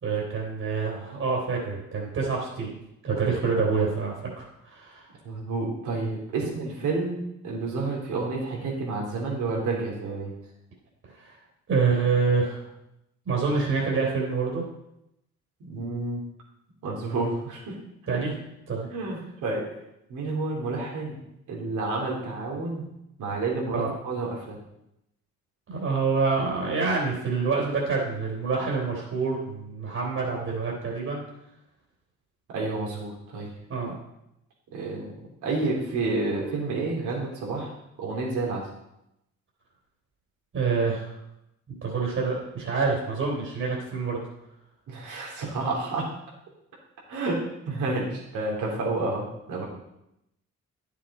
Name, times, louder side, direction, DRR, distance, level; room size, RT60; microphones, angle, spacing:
voice 1, 0.0-2.7 3.0-5.1 11.1-11.4 11.7-12.7 13.2-14.6 18.1-18.4 18.7-18.9 23.7-23.9 25.7-31.2 33.7-33.9 40.5-41.1 41.7-44.2, right 4 dB, 50° right, -4 dB, 3.4 m, -27 dB
voice 2, 5.2-7.2 7.4-10.3 15.6-16.2 16.8-17.8 18.1-18.2 18.9-19.7 20.1-21.2 21.5-22.8 23.2-24.6 32.5-33.5 34.7-35.1 35.4-37.7 38.0-38.6 44.9-46.0 47.1-49.6, right 3 dB, 80° right, -2 dB, 3.2 m, -30 dB
10.5 x 7.2 x 4.2 m, 0.84 s
cardioid pair, 90°, 30 cm